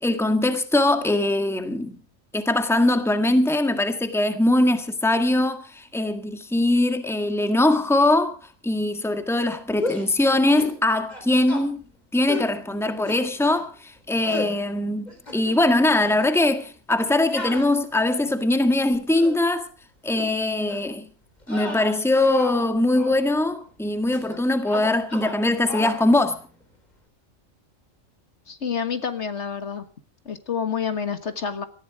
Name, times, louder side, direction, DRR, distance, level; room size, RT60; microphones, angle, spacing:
voice 1, 0.0-2.0 2.3-8.4 8.6-11.8 12.1-13.7 14.1-19.7 20.0-21.0 21.5-26.4, left 2 dB, ahead, 1.6 m, -21 dB
sound 1, 9.8-10.1 10.6-10.8 11.1-11.7 12.3-12.5 13.1-13.6 14.2-14.5 15.1-15.6 15.9-16.2 17.3-18.4 18.9-19.4 20.1-20.3 20.7-20.9 21.4-22.7 22.9-23.2 24.1-24.4 24.6-25.4 25.7-26.0, left 2 dB, 35° left, 4.2 m, -33 dB
voice 2, 28.5-29.9 30.3-31.7, left 7 dB, 60° left, 1.7 m, -28 dB
19.0 x 14.5 x 4.9 m
omnidirectional pair, 1.3 m